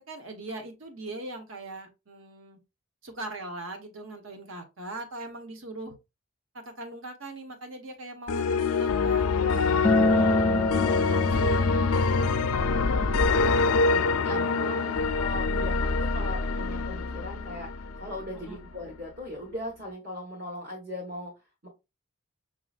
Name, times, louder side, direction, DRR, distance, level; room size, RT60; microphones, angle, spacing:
voice 1, 0.0-2.6 3.0-5.9 6.8-9.8 13.7-15.1 18.4-18.7, right 2 dB, 65° right, 1.1 m, -41 dB
sound 1, 8.3-18.3, left 4 dB, 85° left, 0.5 m, -25 dB
voice 2, 9.3-13.5 14.2-21.3 21.6-21.7, left 1 dB, 50° right, 1.4 m, -40 dB
Acoustic guitar, 9.8-15.0, left 1 dB, 10° left, 0.6 m, -29 dB
6.0 x 2.9 x 2.4 m
head